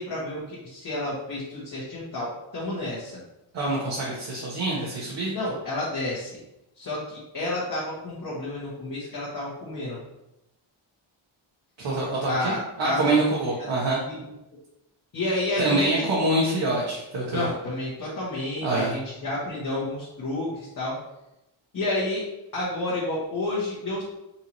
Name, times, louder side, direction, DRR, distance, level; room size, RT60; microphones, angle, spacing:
voice 1, 0.0-3.2 5.3-6.3 6.8-10.0 12.2-13.2 13.6-13.7 14.2-14.3 15.1-16.1 17.3-21.0 21.7-22.3 22.5-24.0, left 2 dB, 45° left, -8 dB, 1.4 m, -30 dB
voice 2, 3.5-5.3 11.8-14.0 15.6-17.5 18.6-18.9, right 2 dB, 60° right, -5 dB, 1.2 m, -25 dB
5.6 x 2.7 x 3.0 m, 0.90 s
cardioid pair, 105°, 48 cm